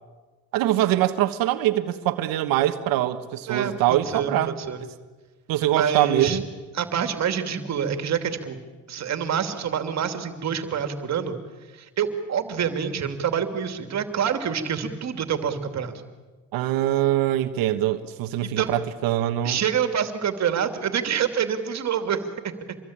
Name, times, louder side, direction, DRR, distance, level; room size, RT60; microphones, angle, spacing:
voice 1, 0.5-4.6 5.5-6.4 16.5-19.6, right 13 dB, 85° right, 1.4 m, -23 dB
voice 2, 3.5-4.8 5.7-6.4 6.7-8.6 8.9-11.4 11.7-16.0 18.6-18.7 19.4-22.8, right 7 dB, 50° right, 2.8 m, -27 dB
26.0 x 22.0 x 8.8 m
cardioid pair, 100°, 34 cm